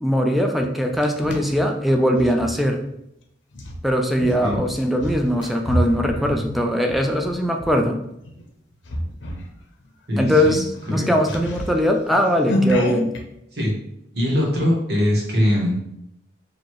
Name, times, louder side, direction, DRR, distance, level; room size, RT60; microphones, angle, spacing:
voice 1, 0.0-2.8 3.8-8.0 10.2-10.6 10.9-13.1, equal, ahead, 2 dB, 0.3 m, -20 dB
sound 1, 0.6-2.5 3.5-7.7 8.2-8.5 8.8-9.5 9.8-9.9 10.3-13.2, equal, 85° left, 0.7 m, -28 dB
voice 2, 10.1-10.6 10.9-11.1 13.5-13.7 14.1-15.8, equal, 60° right, -3 dB, 1.3 m, -21 dB
4.6 x 2.7 x 3.0 m, 0.80 s
head